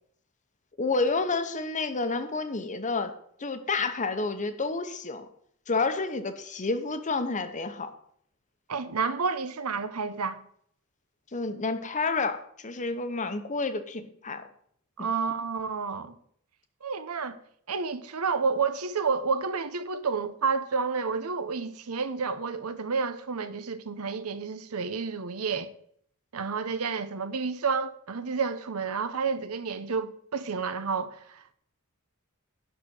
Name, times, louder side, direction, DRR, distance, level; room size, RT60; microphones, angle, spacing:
voice 1, 0.8-3.1 3.4-5.3 5.7-7.9 11.3-14.5 15.0-15.1, left 3 dB, 35° left, 0.9 m, -29 dB
voice 2, 8.7-10.4 15.0-16.2 16.8-17.4 17.7-25.7 26.3-31.5, right 5 dB, 85° right, 0.8 m, -30 dB
11.5 x 4.2 x 7.7 m
head